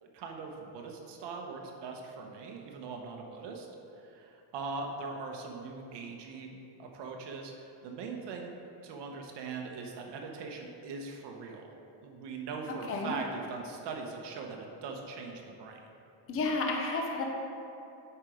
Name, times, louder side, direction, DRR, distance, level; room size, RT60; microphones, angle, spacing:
voice 1, 0.0-3.7 4.0-8.5 8.8-11.7 12.0-15.8, right 4 dB, 60° right, 2 dB, 1.0 m, -41 dB
voice 2, 12.7-13.2 16.3-17.2, left 3 dB, 30° left, 1 dB, 0.7 m, -31 dB
7.3 x 5.0 x 5.0 m, 2.8 s
cardioid pair, 165°, 49 cm